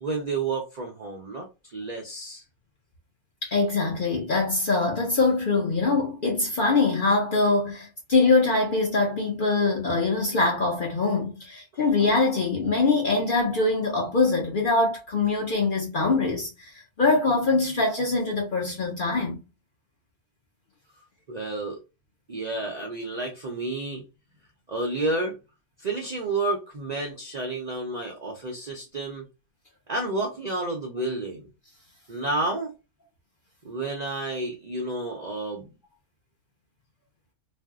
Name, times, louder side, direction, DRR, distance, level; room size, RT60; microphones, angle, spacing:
voice 1, 0.0-2.4 21.3-21.8 22.3-24.0 24.7-25.4 25.8-29.3 29.9-31.5 32.1-32.7 33.6-35.7, right 2 dB, 60° right, 0.4 m, -30 dB
voice 2, 3.4-19.4, left 3 dB, 50° left, 0.6 m, -23 dB
2.6 x 2.0 x 3.5 m
omnidirectional pair, 1.5 m